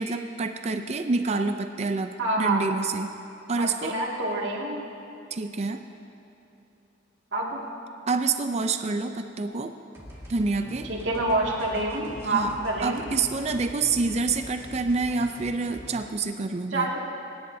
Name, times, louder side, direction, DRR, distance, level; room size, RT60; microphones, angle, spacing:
voice 1, 0.0-3.1 3.5-4.0 5.3-5.8 8.1-9.7 10.3-10.9 12.2-12.5 12.8-16.9, right 3 dB, 35° right, 6 dB, 0.5 m, -27 dB
voice 2, 2.2-2.6 3.6-4.8 7.3-7.6 10.9-13.0 16.7-17.0, right 2 dB, 70° right, -4 dB, 2.2 m, -27 dB
sound 1, 9.9-16.0, equal, 15° right, 2.0 m, -43 dB
24.0 x 10.5 x 2.7 m, 2.8 s
head